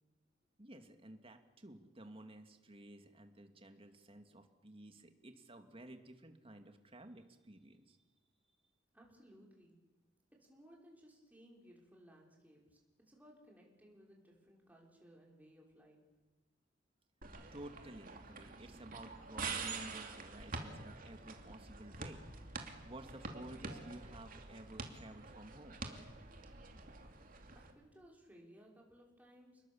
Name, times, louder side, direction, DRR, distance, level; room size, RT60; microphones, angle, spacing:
voice 1, 0.6-8.0 17.5-22.2 22.8-25.8, right 1 dB, 30° right, 6 dB, 2.3 m, -53 dB
voice 2, 8.9-9.8 10.4-12.8 13.1-16.0 27.5-29.6, equal, 10° right, -1 dB, 5.8 m, -61 dB
sound 1, 17.2-27.7, right 4 dB, 45° right, 2.7 m, -47 dB
30.0 x 21.0 x 7.3 m, 1.2 s
head